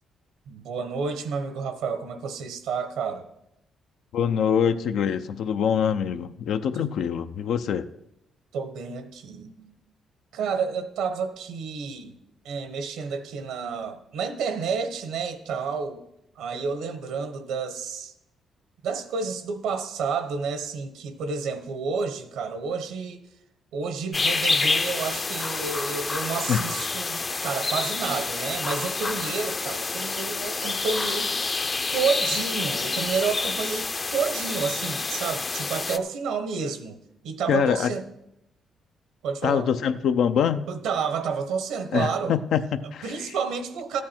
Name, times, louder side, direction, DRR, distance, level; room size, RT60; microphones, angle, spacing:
voice 1, 0.5-3.3 6.8-6.9 8.5-9.7 10.3-12.2 12.4-16.0 16.4-18.1 18.8-23.2 23.7-31.4 31.9-37.0 37.2-38.0 39.2-39.7 40.7-42.3 42.8-44.0, right 5 dB, 90° right, 10 dB, 1.0 m, -30 dB
voice 2, 4.1-7.9 26.5-26.6 37.5-37.9 39.4-40.7 41.9-43.3, left 8 dB, 75° left, 9 dB, 0.5 m, -24 dB
sound 1, 24.1-36.0, left 3 dB, 35° left, 0.6 m, -28 dB
13.0 x 8.4 x 4.4 m, 0.83 s
cardioid pair, 85°, 0 cm